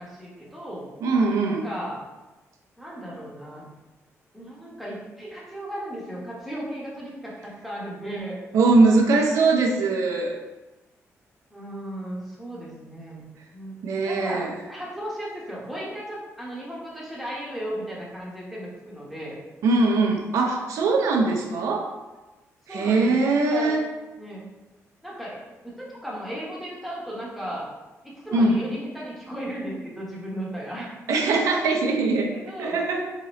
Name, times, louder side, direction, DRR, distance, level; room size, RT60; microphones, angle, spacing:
voice 1, 0.0-0.9 1.6-2.0 2.8-3.7 4.3-8.4 11.5-13.8 14.0-19.4 22.7-23.1 23.5-23.8 24.2-24.5 25.0-27.7 28.0-30.9 32.3-32.8, equal, ahead, -6 dB, 1.1 m, -35 dB
voice 2, 1.0-1.6 8.5-10.4 13.8-14.5 19.6-21.9 22.7-23.8 28.3-28.6 31.1-33.1, right 3 dB, 85° right, 2 dB, 0.6 m, -21 dB
3.8 x 2.9 x 3.0 m, 1.1 s
cardioid pair, 120°, 5 cm